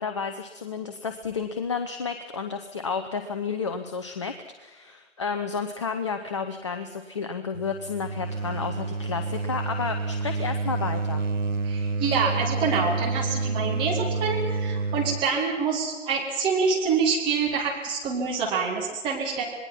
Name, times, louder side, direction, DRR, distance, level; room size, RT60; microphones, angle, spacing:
voice 1, 0.0-11.2, left 5 dB, 25° left, 8 dB, 0.7 m, -31 dB
sound 1, 7.5-15.3, right 3 dB, 80° right, 0.9 m, -29 dB
voice 2, 11.6-19.4, right 5 dB, 15° right, -2 dB, 2.2 m, -26 dB
26.5 x 19.5 x 6.0 m, 1.3 s
figure-of-eight pair, 140°, 37 cm